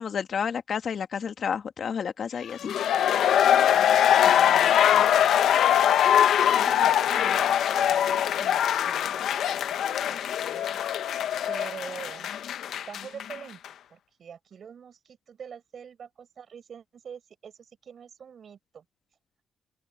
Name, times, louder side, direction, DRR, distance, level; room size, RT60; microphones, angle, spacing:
voice 1, 0.0-2.7, left 7 dB, 60° left, 1.9 m, -30 dB
sound 1, 2.5-13.4 13.6-13.7, left 10 dB, 80° left, 1.0 m, -22 dB
voice 2, 4.2-5.6 6.2-10.9 11.5-12.3 12.8-13.6 13.9-18.8, right 7 dB, 60° right, 6.1 m, -44 dB
open air
cardioid pair, 80°, 0 cm